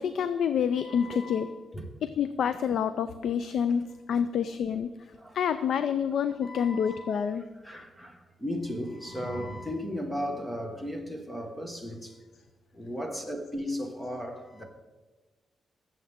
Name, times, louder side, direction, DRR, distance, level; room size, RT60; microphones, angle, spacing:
voice 1, 0.0-1.5 2.0-4.9 5.3-7.5, left 7 dB, 75° left, 0.4 m, -28 dB
voice 2, 0.7-1.5 1.7-1.8 5.2-5.4 6.4-7.2 7.6-12.2 12.7-14.6, equal, 10° left, 1.5 m, -36 dB
20.5 x 7.7 x 3.6 m
wide cardioid pair, 135°, 0 cm